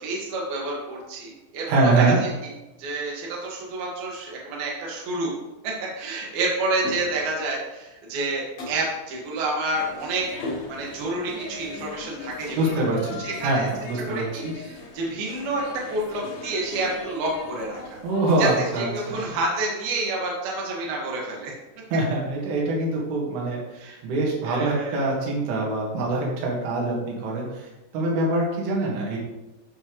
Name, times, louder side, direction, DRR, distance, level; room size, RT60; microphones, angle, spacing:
voice 1, 0.0-2.3 2.8-5.3 5.6-10.2 10.7-12.8 13.2-13.7 14.1-15.6 15.9-18.0 18.4-18.5 18.8-21.5 23.8-24.0 24.4-25.0, right 2 dB, 60° right, -3 dB, 3.4 m, -29 dB
voice 2, 1.7-2.2 12.5-14.5 18.0-19.2 21.9-29.2, right 2 dB, 85° right, -3 dB, 4.4 m, -24 dB
sound 1, 6.8-7.4 8.6-9.0 10.4-11.1, left 2 dB, 65° left, 1.7 m, -35 dB
sound 2, 9.7-19.4, left 5 dB, 90° left, 3.9 m, -40 dB
13.5 x 5.3 x 3.2 m, 1.0 s
omnidirectional pair, 5.6 m